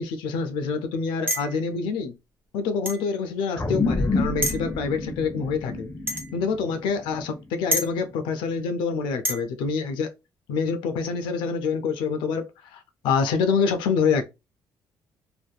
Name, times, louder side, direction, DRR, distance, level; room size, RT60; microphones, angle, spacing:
voice 1, 0.0-2.1 2.5-10.1 10.5-14.2, left 5 dB, 85° left, 0.5 m, -26 dB
sound 1, 1.3-1.6 2.9-3.1 4.4-4.7 6.1-6.3 7.7-7.9 9.2-9.4, equal, 25° right, 0.8 m, -27 dB
sound 2, 3.6-8.3, left 3 dB, 25° left, 0.7 m, -29 dB
2.6 x 2.5 x 2.2 m
supercardioid pair, 75°, 8 cm